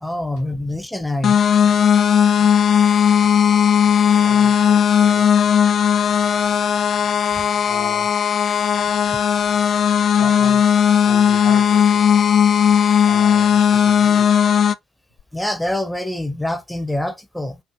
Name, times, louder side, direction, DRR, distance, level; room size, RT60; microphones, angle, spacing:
voice 1, 0.0-1.7 2.4-2.5 15.3-17.6, left 1 dB, 5° left, 0.6 m, -26 dB
sound 1, 1.2-14.7, left 8 dB, 50° left, 0.3 m, -16 dB
voice 2, 4.0-5.4 7.6-8.3 10.1-12.3 13.0-14.4, left 2 dB, 80° left, 1.2 m, -36 dB
4.4 x 2.5 x 2.5 m
figure-of-eight pair, 50°, 0 cm